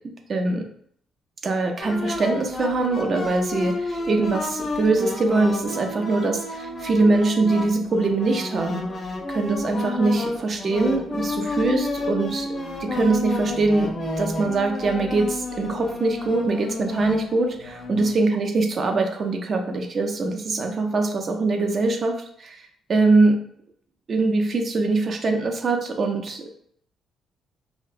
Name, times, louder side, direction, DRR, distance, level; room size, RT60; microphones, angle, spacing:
voice 1, 0.3-0.7 1.4-8.8 9.3-12.5 12.8-22.1 22.4-22.6 22.9-23.4 24.1-26.5, right 3 dB, 45° right, 4 dB, 0.4 m, -23 dB
sound 1, 1.8-18.1, left 2 dB, 40° left, 0.5 m, -31 dB
2.7 x 2.1 x 2.3 m, 0.66 s
cardioid pair, 90°, 0 cm